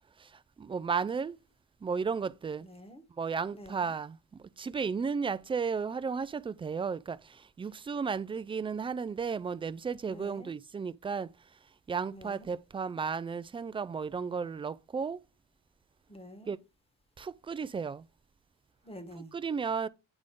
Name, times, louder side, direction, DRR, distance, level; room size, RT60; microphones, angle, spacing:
voice 1, 0.6-1.4 1.8-2.7 3.2-4.2 4.6-7.2 7.6-11.3 11.9-15.2 16.5-16.6 17.2-18.0 19.3-19.9, right 5 dB, 20° right, 0.3 m, -33 dB
voice 2, 2.6-3.0 3.5-4.0 10.0-10.5 12.1-12.5 16.1-16.5 18.8-19.3, equal, 20° left, 1.2 m, -48 dB
9.1 x 3.7 x 3.6 m
cardioid pair, 90°, 30 cm